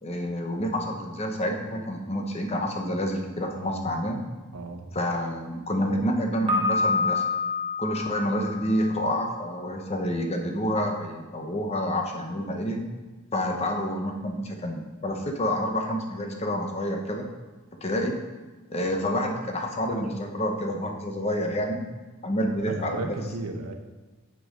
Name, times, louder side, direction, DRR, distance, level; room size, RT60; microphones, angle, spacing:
voice 1, 0.0-4.2 4.9-7.2 7.8-12.9 13.3-17.3 17.8-18.2 18.7-21.9 22.2-23.2, equal, 30° left, 3 dB, 0.8 m, -28 dB
voice 2, 3.5-3.9 4.5-5.0 22.7-23.7, right 2 dB, 85° right, 5 dB, 0.9 m, -35 dB
Piano, 6.5-9.4, left 3 dB, 20° right, 1.1 m, -28 dB
7.8 x 4.7 x 5.1 m, 1.2 s
head